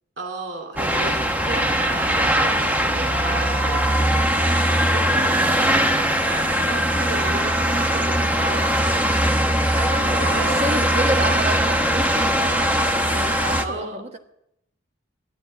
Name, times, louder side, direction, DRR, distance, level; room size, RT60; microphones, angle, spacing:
voice 1, 0.2-10.8 13.6-14.0, right 2 dB, 60° right, 2 dB, 2.4 m, -35 dB
sound 1, 0.8-13.6, equal, 10° right, 0.9 m, -20 dB
voice 2, 4.0-4.4 9.7-12.6 12.9-14.2, right 2 dB, 35° right, 5 dB, 1.4 m, -29 dB
12.5 x 11.0 x 8.1 m, 0.79 s
head